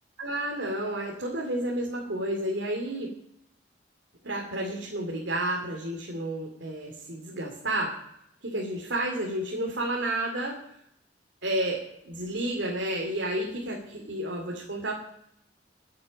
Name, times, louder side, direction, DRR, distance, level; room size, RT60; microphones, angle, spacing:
voice 1, 0.2-3.1 4.2-7.9 8.4-10.6 11.4-14.9, right 1 dB, 85° right, -1 dB, 2.6 m, -31 dB
23.0 x 8.6 x 5.3 m, 0.78 s
head